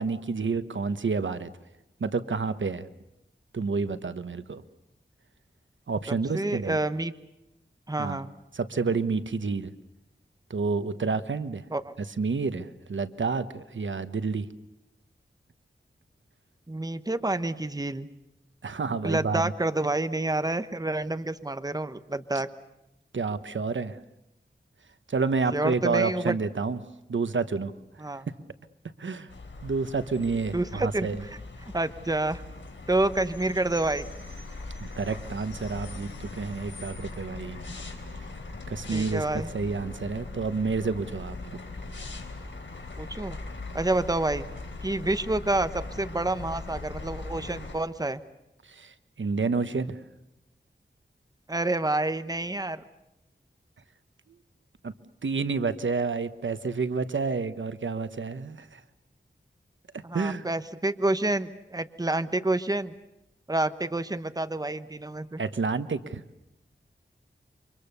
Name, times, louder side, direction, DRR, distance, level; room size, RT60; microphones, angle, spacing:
voice 1, 0.0-1.5 2.0-2.9 3.5-4.6 5.9-6.8 8.0-8.2 8.5-9.7 10.5-11.6 12.2-14.5 18.6-19.5 23.1-24.0 25.1-26.8 27.1-27.7 28.1-28.2 29.0-29.3 29.6-31.2 34.8-37.6 38.7-39.2 39.5-41.4 48.7-50.0 54.8-54.9 55.2-58.8 60.1-60.5 65.4-66.2, right 4 dB, 85° right, 12 dB, 1.1 m, -29 dB
voice 2, 6.1-7.1 7.9-8.3 11.7-11.9 16.7-18.1 19.0-22.5 25.5-26.3 28.0-28.3 30.5-31.1 31.7-32.4 32.9-34.0 38.9-39.5 43.0-43.4 43.7-44.5 44.8-48.2 51.5-52.8 60.0-62.9 63.5-65.4, right 2 dB, 20° right, 11 dB, 1.1 m, -28 dB
sound 1, 29.3-47.8, left 3 dB, 75° left, 3.9 m, -40 dB
29.0 x 25.5 x 6.8 m, 0.90 s
wide cardioid pair, 80°, 19 cm